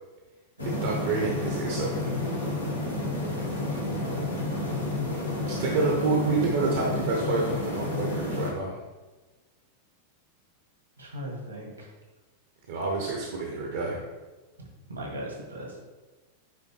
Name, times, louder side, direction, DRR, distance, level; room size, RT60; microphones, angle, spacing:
sound 1, 0.6-8.5, left 2 dB, 90° left, 1.8 m, -30 dB
voice 1, 0.6-2.2 5.5-8.7 12.7-14.0, right 3 dB, 60° right, -1 dB, 0.8 m, -28 dB
voice 2, 4.0-4.3 5.4-5.5 11.0-11.9 14.9-15.8, equal, 80° right, -1 dB, 1.9 m, -38 dB
9.2 x 3.4 x 3.2 m, 1.2 s
figure-of-eight pair, 90°, 0 cm